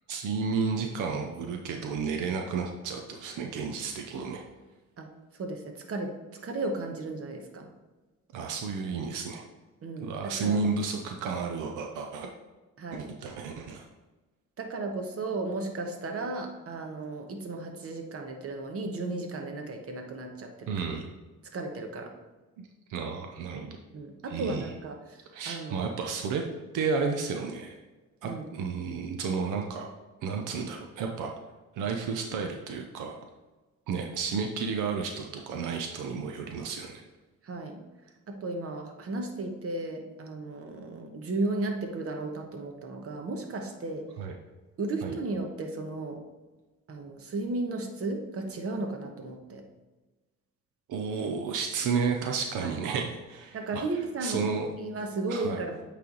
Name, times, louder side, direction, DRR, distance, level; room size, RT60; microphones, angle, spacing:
voice 1, 0.1-4.4 8.3-9.4 10.0-12.3 12.9-13.9 20.7-21.1 22.9-23.8 24.3-24.7 25.3-26.4 26.7-27.8 28.2-29.9 30.2-31.3 31.8-33.2 33.9-37.0 44.2-44.3 45.0-45.2 50.9-53.8 54.2-54.7 55.3-55.6, right 5 dB, 90° right, 3 dB, 0.7 m, -32 dB
voice 2, 5.4-6.2 6.4-7.7 9.8-10.6 12.8-13.0 14.6-20.7 21.5-22.1 23.9-25.2 25.4-25.9 28.2-28.5 37.4-37.8 38.3-44.1 44.8-46.2 46.9-49.6 52.6-52.8 53.5-54.4 54.8-55.8, right 2 dB, 50° right, 3 dB, 1.1 m, -34 dB
8.4 x 3.4 x 3.9 m, 1.2 s
cardioid pair, 90°, 30 cm